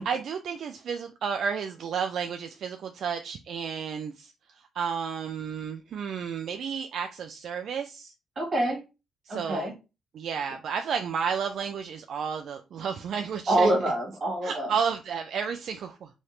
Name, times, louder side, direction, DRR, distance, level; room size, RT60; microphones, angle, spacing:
voice 1, 0.0-4.3 4.7-8.1 9.3-9.7 10.1-13.7 14.4-16.1, right 6 dB, 65° right, 0.3 m, -32 dB
voice 2, 8.3-8.8 9.3-9.7 13.5-14.7, right 1 dB, 40° right, 1.6 m, -26 dB
3.2 x 2.8 x 3.0 m
cardioid pair, 90°, 0 cm